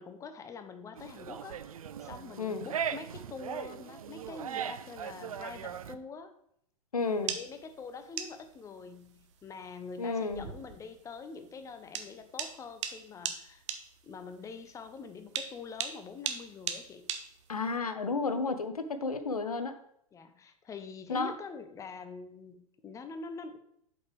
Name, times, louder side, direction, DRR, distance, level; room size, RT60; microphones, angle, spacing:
voice 1, 0.0-1.6 2.0-6.3 7.2-13.6 14.0-17.1 20.1-23.6, left 5 dB, 15° left, 9 dB, 0.7 m, -45 dB
sound 1, 1.0-6.0, right 8 dB, 70° right, 0.4 m, -39 dB
voice 2, 6.9-7.4 10.0-10.5 17.5-19.7 21.1-21.3, left 4 dB, 80° left, 10 dB, 0.7 m, -32 dB
sound 2, 7.0-17.8, right 8 dB, 50° right, 0.8 m, -40 dB
7.8 x 5.2 x 3.3 m, 0.71 s
figure-of-eight pair, 95°, 19 cm